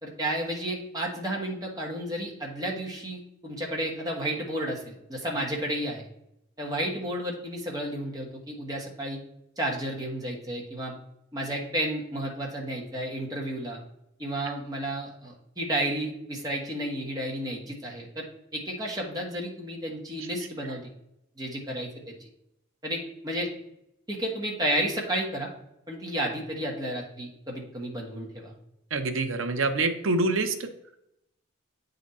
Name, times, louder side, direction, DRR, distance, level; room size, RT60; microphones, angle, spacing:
voice 1, 0.0-6.1 6.6-9.2 9.6-10.9 11.3-13.8 14.2-18.3 18.5-20.9 21.4-22.1 22.8-23.5 24.1-25.5 25.9-28.5, right 1 dB, 20° right, -2 dB, 1.4 m, -32 dB
voice 2, 28.9-30.7, right 3 dB, 75° right, 7 dB, 0.8 m, -26 dB
8.3 x 4.0 x 4.2 m, 0.81 s
head